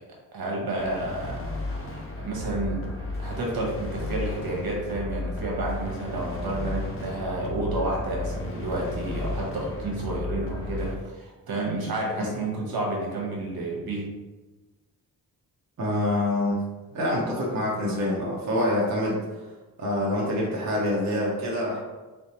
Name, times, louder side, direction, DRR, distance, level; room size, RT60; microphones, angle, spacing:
voice 1, 0.3-2.8 3.2-14.1, right 2 dB, 75° right, -2 dB, 1.1 m, -30 dB
sound 1, 0.8-10.9, left 2 dB, 35° left, 0.6 m, -34 dB
voice 2, 15.8-16.6 16.9-19.2 19.8-21.8, left 1 dB, 45° right, -4 dB, 0.7 m, -26 dB
3.8 x 3.3 x 2.8 m, 1.2 s
wide cardioid pair, 170°, 37 cm